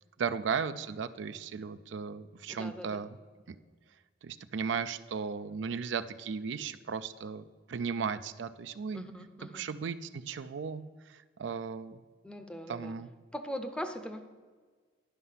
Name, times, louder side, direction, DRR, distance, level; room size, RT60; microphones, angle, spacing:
voice 1, 0.2-3.1 3.5-3.6 4.2-9.1 9.5-12.0 12.7-13.1, right 6 dB, 70° right, 12 dB, 0.4 m, -36 dB
voice 2, 2.5-3.1 8.9-9.7 12.2-13.0 13.3-14.2, equal, 5° left, 7 dB, 0.6 m, -40 dB
11.0 x 5.5 x 5.6 m, 1.5 s
head